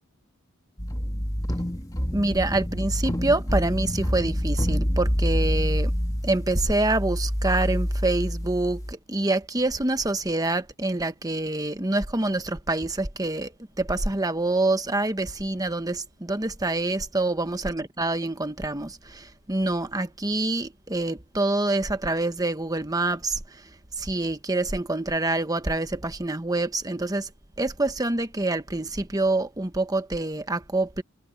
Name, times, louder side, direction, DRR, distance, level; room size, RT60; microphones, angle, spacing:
sound 1, 0.8-8.9, equal, 15° left, 2.7 m, -27 dB
voice 1, 2.1-5.9 6.2-13.5 13.8-23.6 24.0-27.3 27.6-31.0, right 2 dB, 15° right, 1.1 m, -26 dB
head